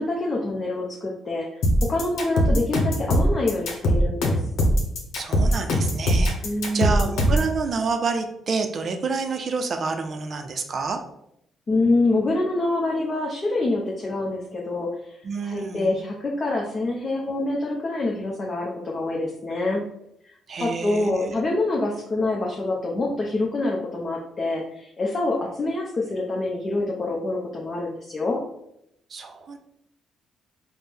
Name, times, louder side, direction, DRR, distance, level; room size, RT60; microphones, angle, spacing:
voice 1, 0.0-1.5 1.8-4.4 6.4-7.2 11.7-19.8 20.6-28.4, left 2 dB, 35° left, -2 dB, 0.6 m, -26 dB
sound 1, 1.6-7.5, equal, 80° left, 0.8 m, -21 dB
voice 2, 5.1-6.4 6.7-11.0 15.2-15.9 20.5-21.3 29.1-29.6, right 4 dB, 50° right, 5 dB, 0.4 m, -28 dB
4.2 x 2.1 x 3.4 m, 0.78 s
cardioid pair, 90°, 0 cm